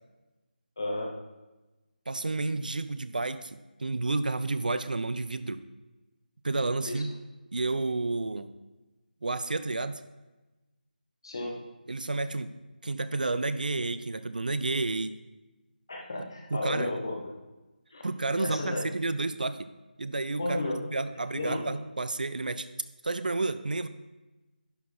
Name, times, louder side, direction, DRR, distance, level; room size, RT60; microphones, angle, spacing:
voice 1, 0.8-1.1 6.9-7.0 11.2-11.6 15.9-17.2 17.9-18.0 18.4-18.8 20.4-20.7 21.3-21.6, left 2 dB, 25° left, -1 dB, 1.0 m, -32 dB
voice 2, 2.1-5.6 6.4-7.2 7.5-8.5 9.2-10.0 11.9-12.5 12.8-15.2 16.5-16.9 18.0-19.7 20.0-20.6 20.9-22.7 23.0-23.9, right 3 dB, 55° right, 12 dB, 0.4 m, -30 dB
11.0 x 4.5 x 4.3 m, 1.1 s
figure-of-eight pair, 180°, 5 cm